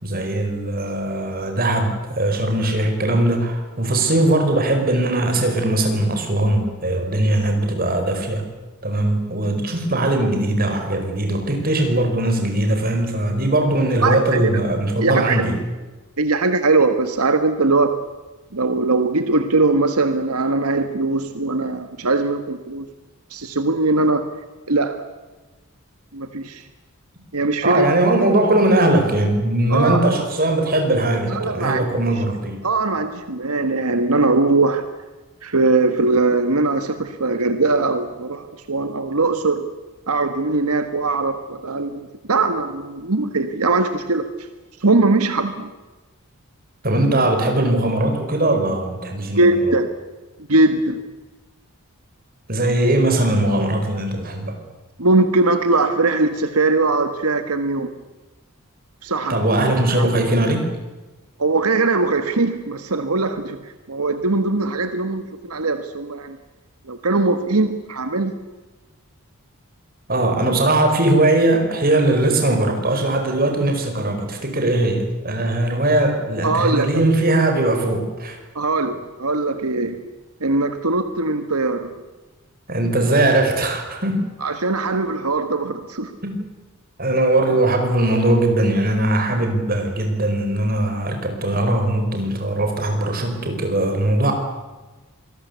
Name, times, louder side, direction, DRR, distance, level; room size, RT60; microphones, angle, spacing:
voice 1, 0.0-8.5 8.8-15.6 27.6-32.6 46.8-49.8 52.5-54.6 59.3-60.7 70.1-78.4 82.7-84.3 86.2-86.4 87.0-94.3, right 1 dB, 40° right, 4 dB, 5.2 m, -20 dB
voice 2, 14.0-14.5 15.0-15.4 16.2-18.0 18.5-22.9 23.3-24.3 24.7-25.0 26.1-26.6 27.3-27.9 29.7-30.0 31.3-31.9 32.6-34.8 35.4-39.7 40.1-42.0 42.3-44.3 44.8-45.7 49.4-49.9 50.5-51.0 55.0-57.9 59.0-59.4 60.0-60.1 61.4-63.6 63.9-66.4 66.9-68.3 76.4-77.0 78.6-80.0 80.4-81.9 84.4-86.1, right 3 dB, 85° right, 9 dB, 1.7 m, -20 dB
26.5 x 20.0 x 8.3 m, 1.2 s
head